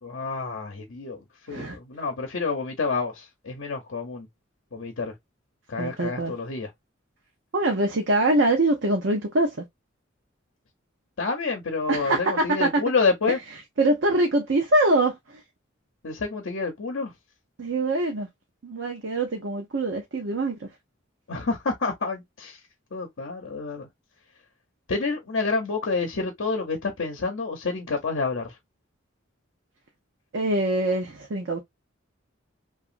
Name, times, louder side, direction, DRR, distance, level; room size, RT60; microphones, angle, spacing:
voice 1, 0.0-4.3 4.7-5.1 5.7-6.7 11.2-13.4 16.0-17.1 21.3-22.6 22.9-23.9 24.9-28.6, left 4 dB, 70° left, 0.7 m, -28 dB
voice 2, 5.8-6.3 7.5-9.6 11.9-12.7 13.8-15.4 17.6-18.3 18.6-20.7 30.3-31.6, right 2 dB, 65° right, 0.7 m, -24 dB
2.9 x 2.4 x 2.4 m
head